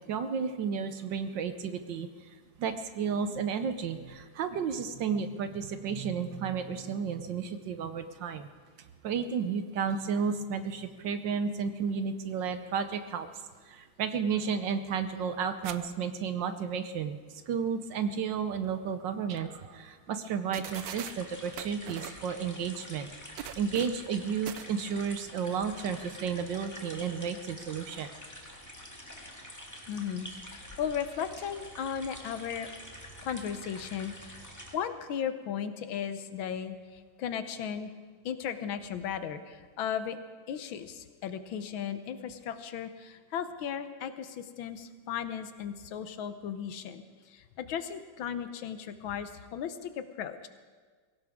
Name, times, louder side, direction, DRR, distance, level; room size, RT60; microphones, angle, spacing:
voice 1, 0.1-2.1 2.6-8.5 9.0-13.3 13.7-17.2 17.5-23.1 23.6-28.1, right 6 dB, 65° right, 10 dB, 1.4 m, -32 dB
sound 1, 15.6-15.8 16.1-16.2 18.9-19.0 19.4-19.5 20.3-20.4 20.5-21.2 21.6-22.2 23.4-24.0 24.5-24.7, right 11 dB, 85° right, 0.8 m, -41 dB
sound 2, 20.6-34.7, equal, 10° left, 1.8 m, -47 dB
voice 2, 29.9-32.7 33.2-34.4 34.7-37.9 38.3-40.2 40.5-50.5, left 8 dB, 75° left, 10 dB, 1.6 m, -36 dB
22.5 x 17.0 x 3.6 m, 1.5 s
omnidirectional pair, 2.3 m